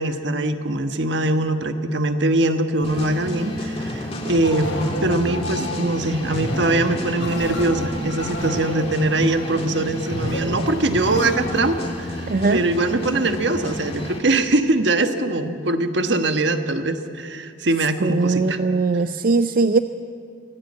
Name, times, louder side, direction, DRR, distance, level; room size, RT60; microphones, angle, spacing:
voice 1, 0.0-4.8 5.0-18.6, right 2 dB, 65° right, 8 dB, 1.4 m, -22 dB
sound 1, 2.8-14.2, left 1 dB, 35° left, 2.8 m, -31 dB
sound 2, 4.4-11.9, equal, 80° left, 4.6 m, -31 dB
voice 2, 12.3-12.6 18.0-19.8, right 3 dB, 50° right, 12 dB, 0.5 m, -20 dB
24.0 x 16.5 x 8.5 m, 2.5 s
head